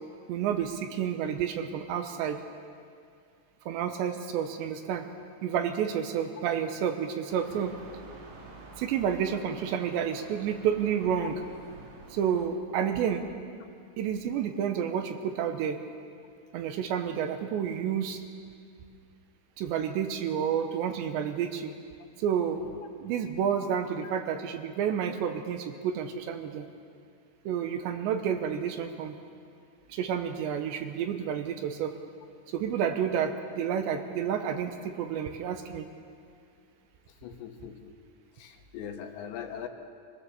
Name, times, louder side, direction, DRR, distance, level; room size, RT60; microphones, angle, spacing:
voice 1, 0.3-2.4 3.7-5.1 5.4-7.7 8.8-11.3 12.1-13.3 14.0-15.8 16.5-18.2 19.6-21.7 22.2-22.6 23.0-26.7 27.5-29.2 29.9-31.9 32.5-35.9, right 8 dB, 75° right, 6 dB, 3.0 m, -30 dB
sound 1, 7.3-12.5, right 2 dB, 50° right, 3.2 m, -49 dB
voice 2, 37.1-38.0 38.3-39.7, left 8 dB, 75° left, 4 dB, 3.3 m, -41 dB
25.0 x 17.0 x 7.0 m, 2.3 s
omnidirectional pair, 5.5 m